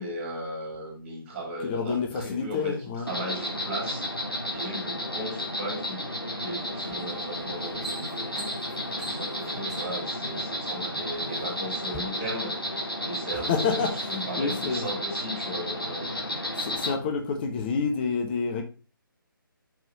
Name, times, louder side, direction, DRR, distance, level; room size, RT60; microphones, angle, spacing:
voice 1, 0.0-4.1 4.5-6.0 6.4-8.6 9.0-16.2, equal, 25° right, 3.1 m, -37 dB
voice 2, 1.6-3.1 13.5-14.8 16.6-18.6, left 5 dB, 25° left, 1.2 m, -28 dB
Insect, 3.1-16.9, left 1 dB, 90° left, 2.5 m, -33 dB
sound 1, 6.9-7.1 7.5-10.1 10.9-11.5 11.8-12.0, right 1 dB, ahead, 1.3 m, -41 dB
5.9 x 4.8 x 6.6 m
figure-of-eight pair, 145°, 12 cm